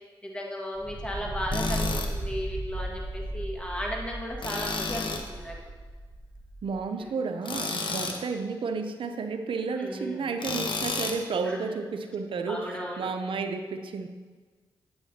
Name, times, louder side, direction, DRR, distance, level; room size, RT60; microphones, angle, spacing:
voice 1, 0.2-5.6 7.0-7.1 9.8-10.3 11.4-11.6 12.5-13.1, equal, 10° left, -2 dB, 1.7 m, -35 dB
sound 1, 0.8-6.8, right 1 dB, 5° right, 0.8 m, -36 dB
Tools, 1.5-2.1 4.4-5.3 7.4-8.2 10.4-11.2, left 4 dB, 65° left, 0.9 m, -31 dB
voice 2, 6.6-14.1, right 4 dB, 70° right, 7 dB, 0.6 m, -32 dB
9.0 x 8.6 x 2.8 m, 1.4 s
cardioid pair, 60°, 9 cm